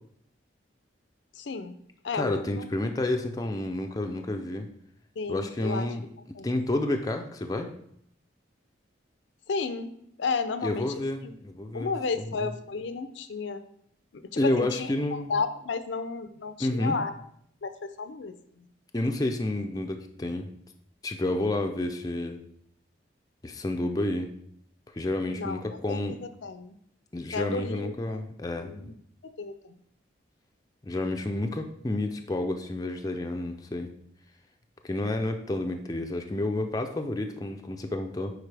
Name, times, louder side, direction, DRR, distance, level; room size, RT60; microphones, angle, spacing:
voice 1, 1.4-1.8 2.0-2.7 5.2-5.9 6.3-6.5 9.5-10.9 11.2-11.3 11.7-13.6 14.1-17.1 17.6-18.6 25.4-25.6 25.9-26.8 27.3-28.2 28.6-28.9 29.2-29.8, left 4 dB, 70° left, 11 dB, 0.5 m, -33 dB
voice 2, 2.1-4.7 5.3-6.1 6.4-7.7 10.6-12.5 14.4-15.3 16.6-17.0 18.9-20.5 21.0-22.4 23.4-24.3 24.9-26.2 27.1-28.9 30.8-33.9 34.8-38.3, left 1 dB, 20° left, 4 dB, 0.4 m, -30 dB
9.7 x 4.0 x 3.3 m, 0.69 s
head